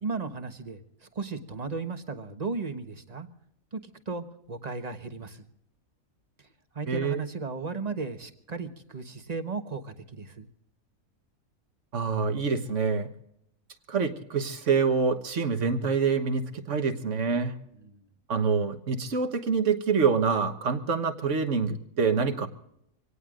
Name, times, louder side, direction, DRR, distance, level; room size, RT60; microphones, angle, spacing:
voice 1, 0.0-3.3 3.7-5.4 6.7-10.5 17.8-18.0, right 4 dB, 30° right, 7 dB, 1.2 m, -35 dB
voice 2, 6.9-7.2 11.9-13.1 13.9-17.5 18.3-22.5, right 5 dB, 60° right, 8 dB, 1.6 m, -26 dB
25.5 x 18.0 x 2.5 m, 0.78 s
omnidirectional pair, 1.5 m